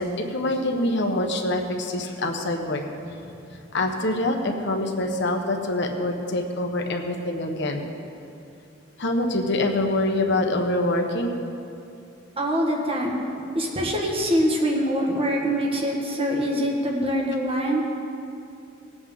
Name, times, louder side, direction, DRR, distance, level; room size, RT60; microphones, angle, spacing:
voice 1, 0.0-2.8 3.7-7.9 9.0-11.4 17.7-17.8, left 1 dB, 65° left, 3 dB, 1.3 m, -25 dB
voice 2, 12.4-13.2 13.5-17.8, equal, 30° right, 0 dB, 1.6 m, -24 dB
20.0 x 8.1 x 3.8 m, 2.6 s
head